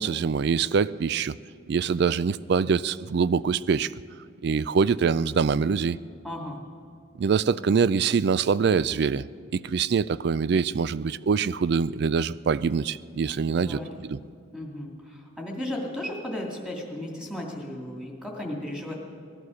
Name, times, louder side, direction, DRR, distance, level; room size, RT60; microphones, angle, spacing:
voice 1, 0.0-1.3 1.7-3.9 4.4-6.0 7.2-9.2 9.5-14.2, right 5 dB, 55° right, 18 dB, 0.4 m, -24 dB
voice 2, 6.2-6.6 13.5-13.9 14.5-18.9, left 1 dB, 5° right, -1 dB, 2.4 m, -35 dB
19.0 x 12.0 x 6.4 m, 2.4 s
head